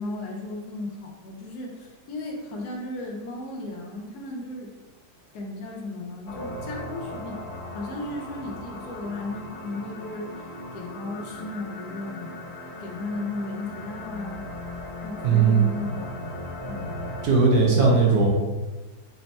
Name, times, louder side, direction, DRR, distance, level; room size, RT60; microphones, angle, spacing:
voice 1, 0.0-4.7 5.3-7.4 7.7-12.4 12.8-14.4 15.0-16.4 16.7-17.0, left 2 dB, 70° left, -1 dB, 1.2 m, -35 dB
sound 1, 6.3-17.3, left 1 dB, 40° left, 0.4 m, -38 dB
voice 2, 15.2-15.7 17.2-18.3, right 4 dB, 65° right, -2 dB, 1.2 m, -18 dB
4.2 x 2.2 x 4.0 m, 1.2 s
omnidirectional pair, 1.8 m